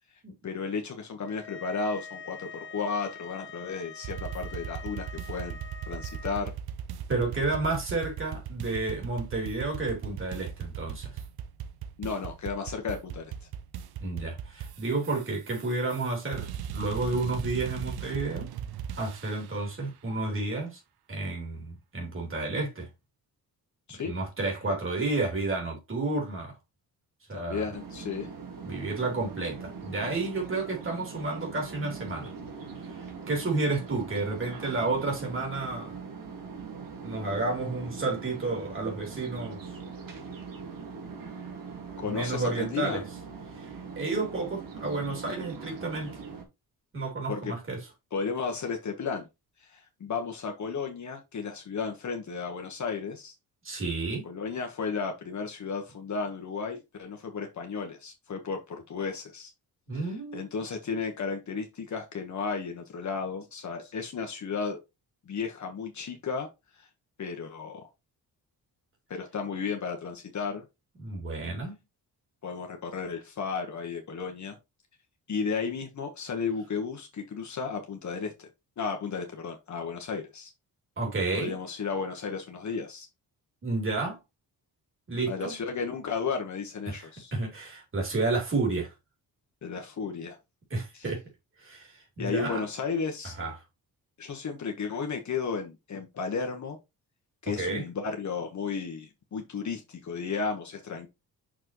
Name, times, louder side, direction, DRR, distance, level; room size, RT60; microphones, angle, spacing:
voice 1, 0.4-5.6 5.9-6.5 12.0-13.3 23.9-24.1 27.3-28.3 42.0-43.0 47.3-47.5 48.1-49.3 49.6-53.3 54.2-59.5 59.9-64.8 65.3-66.5 66.7-66.9 67.2-67.8 69.1-70.6 72.4-74.6 75.3-78.5 78.8-80.5 81.3-83.1 85.3-87.3 89.6-90.4 90.9-91.1 92.2-93.4 94.2-96.8 97.4-101.1, left 5 dB, 50° left, 1.3 m, -34 dB
sound 1, 1.2-6.4, left 5 dB, 30° left, 1.0 m, -45 dB
sound 2, 4.0-19.6, right 8 dB, 80° right, 0.7 m, -38 dB
voice 2, 7.1-11.1 14.0-18.5 19.0-20.8 21.1-22.9 24.0-26.5 27.3-27.7 28.7-32.3 32.8-36.0 37.0-39.6 42.0-43.0 43.6-43.7 43.9-46.1 46.9-47.8 53.6-54.3 59.9-60.4 71.0-71.8 81.0-81.6 83.6-84.2 85.1-85.5 86.9-88.9 90.7-91.2 91.6-92.6 93.4-93.5 97.4-97.8, right 3 dB, 35° right, 3.3 m, -31 dB
sound 3, 27.7-46.4, right 5 dB, 60° right, 1.9 m, -42 dB
6.4 x 5.9 x 3.0 m
wide cardioid pair, 135°, 38 cm